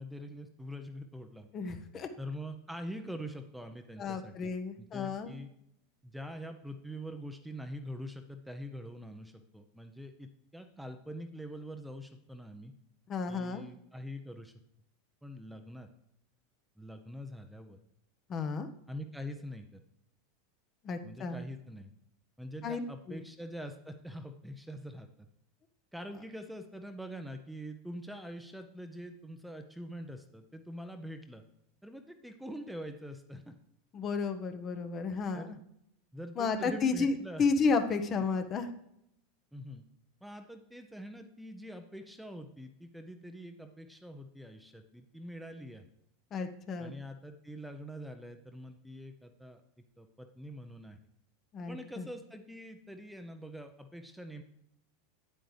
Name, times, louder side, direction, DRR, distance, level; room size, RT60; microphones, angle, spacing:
voice 1, 0.0-1.5 2.2-4.5 4.8-5.5 6.0-12.7 13.3-14.5 15.2-15.9 16.8-17.8 18.9-19.8 21.0-21.9 22.4-25.1 25.9-31.4 31.8-33.6 35.3-35.6 36.1-37.5 39.5-39.8 40.2-45.9 46.8-49.6 50.0-51.0 51.7-54.4, equal, ahead, 6 dB, 0.7 m, -44 dB
voice 2, 1.5-2.1 4.0-5.4 13.1-13.7 18.3-18.7 20.8-21.4 22.6-22.8 23.1-23.2 33.9-35.6 36.4-38.7 46.3-46.9 51.5-52.1, left 4 dB, 35° left, 8 dB, 0.9 m, -32 dB
9.0 x 8.7 x 3.3 m, 0.77 s
figure-of-eight pair, 85°, 0 cm